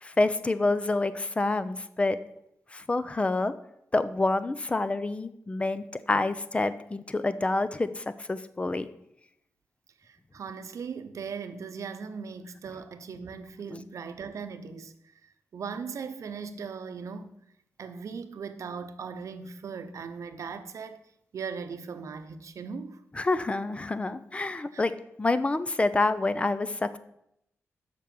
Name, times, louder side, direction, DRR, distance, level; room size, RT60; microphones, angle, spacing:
voice 1, 0.0-2.2 2.7-3.5 3.9-8.9 13.7-13.8 23.2-27.0, left 2 dB, 25° left, 0.5 m, -27 dB
voice 2, 10.0-14.9 15.2-17.3 17.8-21.0 21.3-23.0 24.7-24.8, right 5 dB, 80° right, 0.7 m, -39 dB
7.5 x 6.1 x 6.9 m
wide cardioid pair, 145°, 5 cm